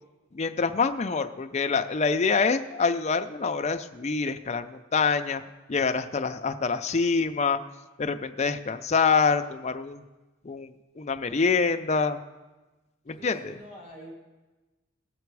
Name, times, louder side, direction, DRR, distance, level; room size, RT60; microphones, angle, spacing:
voice 1, 0.3-5.4 5.7-7.6 8.0-10.0 10.4-12.2 13.1-13.4, left 5 dB, 30° left, 7 dB, 0.5 m, -26 dB
voice 2, 13.2-14.1, right 1 dB, 40° right, -4 dB, 3.5 m, -45 dB
18.5 x 6.9 x 4.7 m, 1.2 s
head